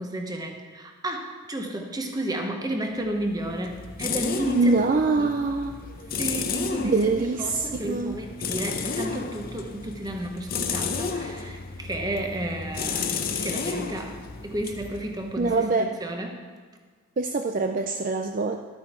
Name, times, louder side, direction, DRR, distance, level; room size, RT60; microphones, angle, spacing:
voice 1, 0.0-5.3 6.2-16.5, right 1 dB, 20° right, 3 dB, 1.0 m, -32 dB
sound 1, 3.0-15.7, left 5 dB, 45° left, 0.7 m, -33 dB
voice 2, 4.5-5.7 6.8-8.2 15.4-15.9 17.2-18.6, right 3 dB, 40° right, 5 dB, 0.4 m, -24 dB
12.5 x 9.0 x 4.4 m, 1.5 s
head